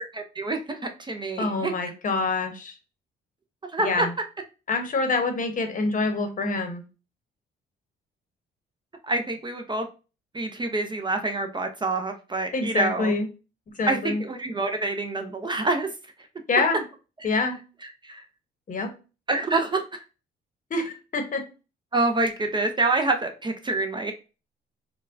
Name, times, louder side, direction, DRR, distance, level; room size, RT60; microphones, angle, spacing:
voice 1, 0.1-1.7 3.7-4.1 9.1-9.9 10.3-13.1 13.9-15.9 18.0-18.2 19.3-20.0 21.9-24.1, right 2 dB, 25° right, 5 dB, 0.5 m, -26 dB
voice 2, 1.4-2.8 3.8-4.1 4.7-6.8 12.5-13.3 13.7-14.2 16.5-16.8 17.2-17.6 18.7-18.9 20.7-21.4, left 3 dB, 40° left, 6 dB, 0.8 m, -26 dB
4.2 x 2.2 x 2.5 m, 0.32 s
cardioid pair, 90°, 20 cm